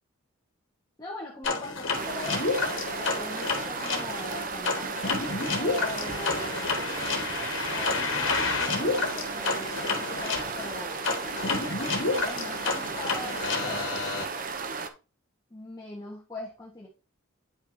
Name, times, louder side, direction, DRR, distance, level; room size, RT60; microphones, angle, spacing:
voice 1, 1.0-2.5 3.0-5.2 5.6-6.8 7.7-11.0 12.1-13.9 15.5-16.9, left 2 dB, 20° left, -4 dB, 1.4 m, -41 dB
sound 1, 1.4-14.2, left 3 dB, 65° left, 1.6 m, -30 dB
sound 2, 1.9-14.9, right 5 dB, 40° right, 0.7 m, -35 dB
9.0 x 5.8 x 2.8 m, 0.33 s
head